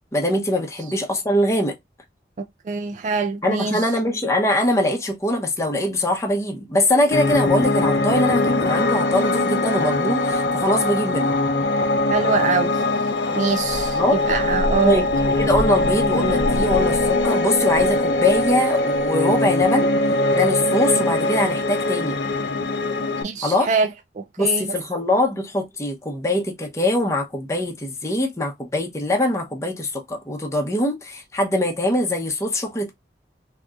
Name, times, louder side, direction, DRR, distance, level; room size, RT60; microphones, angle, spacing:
voice 1, 0.1-1.8 3.4-11.3 13.9-14.2 14.8-19.9 20.3-22.2 23.4-23.7 24.4-32.9, left 1 dB, 15° left, 0.7 m, -22 dB
voice 2, 2.4-3.9 12.1-12.8 13.3-15.1 23.2-23.9 24.2-24.7, right 4 dB, 45° right, 0.3 m, -24 dB
Piano, 7.1-23.2, left 2 dB, 70° left, 0.6 m, -21 dB
sound 1, 13.5-19.1, equal, 10° right, 1.2 m, -32 dB
3.7 x 2.8 x 2.4 m
head